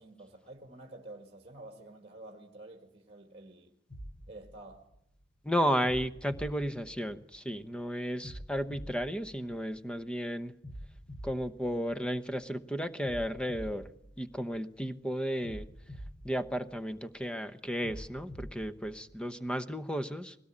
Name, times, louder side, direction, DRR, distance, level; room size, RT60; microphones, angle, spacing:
voice 1, 0.0-3.8 4.3-4.9, right 2 dB, 35° right, 1.8 m, -49 dB
sound 1, 3.9-5.2 5.8-7.5 8.2-10.0 10.6-12.4 13.0-14.8 15.4-17.1 17.8-19.2, equal, 85° left, 2.4 m, -47 dB
voice 2, 5.4-10.5 11.2-13.9 14.2-15.7 16.2-20.4, equal, 5° left, 0.9 m, -33 dB
21.0 x 17.5 x 8.6 m
head